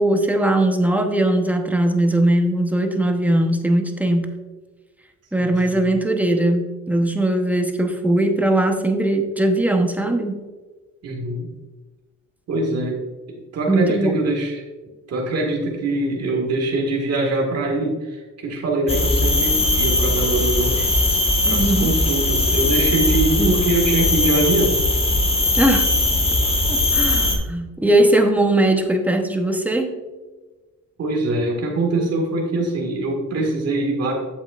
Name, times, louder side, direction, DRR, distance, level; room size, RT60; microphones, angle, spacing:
voice 1, 0.0-4.3 5.3-10.4 13.7-14.2 21.4-21.9 23.4-23.5 25.5-25.9 26.7-30.0, right 1 dB, 5° right, 4 dB, 0.9 m, -20 dB
voice 2, 5.4-5.8 11.0-11.5 12.5-14.6 15.1-20.9 21.5-24.8 31.0-34.1, right 2 dB, 55° right, 0 dB, 1.9 m, -23 dB
sound 1, 18.9-27.4, left 2 dB, 20° left, 1.3 m, -19 dB
8.6 x 7.2 x 2.5 m, 1.3 s
cardioid pair, 90°, 30 cm